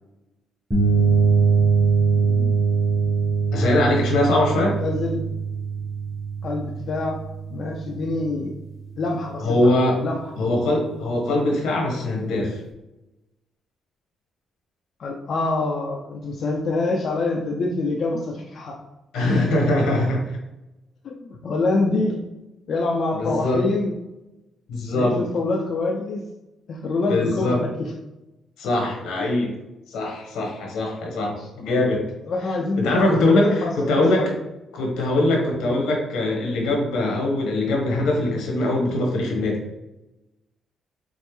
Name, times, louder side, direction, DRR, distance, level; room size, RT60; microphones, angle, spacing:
sound 1, 0.7-8.4, right 5 dB, 15° right, 1.3 m, -22 dB
voice 1, 2.1-2.8 4.5-5.2 6.4-7.2 7.5-8.5 9.0-10.3 15.0-18.8 21.0-22.2 22.7-23.9 24.9-26.3 26.7-27.9 29.2-29.5 31.1-31.5 32.3-32.9 33.1-34.4 35.6-35.9, left 3 dB, 55° left, -1 dB, 0.5 m, -26 dB
voice 2, 3.5-4.8 9.4-9.9 10.4-12.6 19.1-20.4 23.1-23.6 24.7-25.1 27.1-27.6 28.6-29.5 29.9-32.0 32.8-34.2 34.7-39.6, left 2 dB, 85° left, 0 dB, 1.2 m, -22 dB
5.3 x 2.0 x 3.1 m, 0.97 s
cardioid pair, 90°, 0 cm